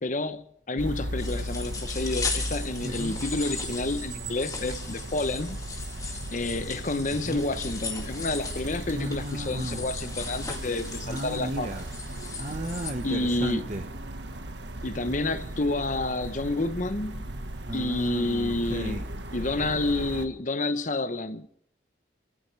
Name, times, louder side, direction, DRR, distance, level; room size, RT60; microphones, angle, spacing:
voice 1, 0.0-5.6 6.3-11.8 13.0-13.7 14.8-17.3 17.7-19.0 19.3-21.5, left 2 dB, 40° left, 0.9 m, -29 dB
sound 1, 0.8-20.3, right 1 dB, 70° right, 1.5 m, -37 dB
sound 2, 1.2-12.9, left 4 dB, 20° left, 2.2 m, -38 dB
voice 2, 8.9-9.8 11.1-11.8 12.4-13.8 17.6-19.0, right 1 dB, 40° right, 1.3 m, -34 dB
30.0 x 14.5 x 3.4 m
head